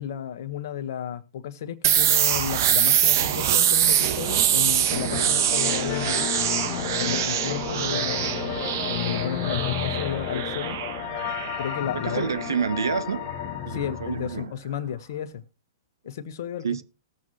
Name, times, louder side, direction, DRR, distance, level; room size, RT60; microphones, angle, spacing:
voice 1, 0.0-6.3 7.0-8.3 8.9-10.8 11.6-12.3 13.7-15.4 16.0-16.7, left 9 dB, 60° left, 1.2 m, -33 dB
sound 1, 1.8-13.5, right 10 dB, 55° right, 1.2 m, -24 dB
sound 2, 4.9-14.4, left 15 dB, 40° left, 0.7 m, -32 dB
voice 2, 11.9-13.2 13.6-14.5 16.6-16.8, right 6 dB, 80° right, 0.8 m, -28 dB
19.0 x 7.7 x 2.9 m
hypercardioid pair, 115°, 2 cm